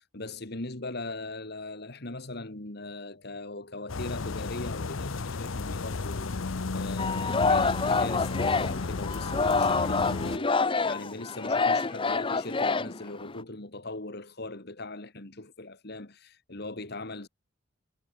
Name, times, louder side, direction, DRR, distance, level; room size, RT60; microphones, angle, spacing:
voice 1, 0.0-17.3, left 2 dB, 55° left, 2.5 m, -40 dB
sound 1, 3.9-10.4, left 3 dB, 90° left, 0.8 m, -33 dB
Singing, 7.0-13.4, left 4 dB, 25° left, 0.8 m, -27 dB
head